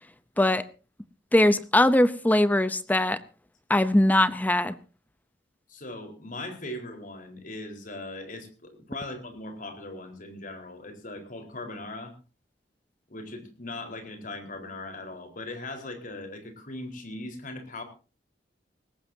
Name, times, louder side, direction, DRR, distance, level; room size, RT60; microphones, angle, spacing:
voice 1, 1.3-3.2 3.7-4.8, left 1 dB, 10° left, 14 dB, 0.7 m, -21 dB
voice 2, 5.7-12.1 13.1-17.8, left 2 dB, 50° left, 6 dB, 4.4 m, -39 dB
21.0 x 18.5 x 2.8 m, 0.34 s
head